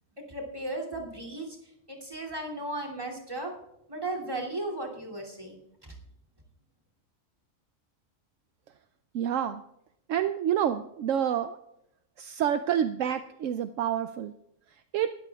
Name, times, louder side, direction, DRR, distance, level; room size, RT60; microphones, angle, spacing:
voice 1, 0.2-1.6 1.9-3.5 3.9-5.6, right 2 dB, 20° right, 2 dB, 2.8 m, -35 dB
voice 2, 9.1-9.6 10.1-11.6 12.2-14.3 14.7-15.1, right 9 dB, 75° right, 9 dB, 0.9 m, -28 dB
20.5 x 13.5 x 2.3 m, 0.82 s
omnidirectional pair, 1.4 m